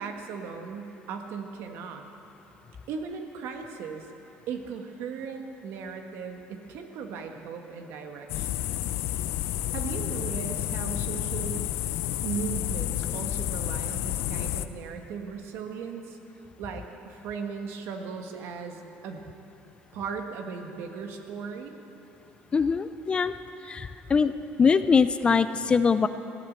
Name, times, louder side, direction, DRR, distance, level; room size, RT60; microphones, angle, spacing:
voice 1, 0.0-2.0 2.9-4.1 4.5-8.7 9.7-11.7 12.2-16.2 16.6-19.3 19.9-21.8, right 5 dB, 75° right, 4 dB, 1.5 m, -37 dB
sound 1, 8.3-14.7, left 13 dB, 80° left, 0.5 m, -30 dB
voice 2, 22.5-23.3 23.7-24.3 24.6-26.1, left 5 dB, 25° left, 12 dB, 0.4 m, -22 dB
15.0 x 11.5 x 7.4 m, 2.9 s
cardioid pair, 135°, 4 cm